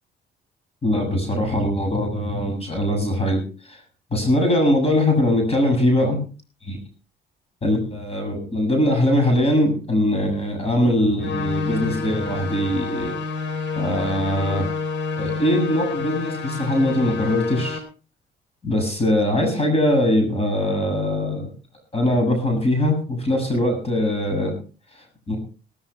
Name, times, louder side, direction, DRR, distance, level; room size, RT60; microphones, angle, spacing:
voice 1, 0.8-3.8 4.1-6.2 7.6-13.2 13.8-14.7 15.2-17.8 18.6-21.5 21.9-24.5 25.3-25.4, left 1 dB, 30° left, 4 dB, 7.1 m, -21 dB
sound 1, 11.2-17.8, left 4 dB, 70° left, 3.8 m, -29 dB
18.5 x 14.5 x 3.3 m, 0.36 s
cardioid pair, 90°, 20 cm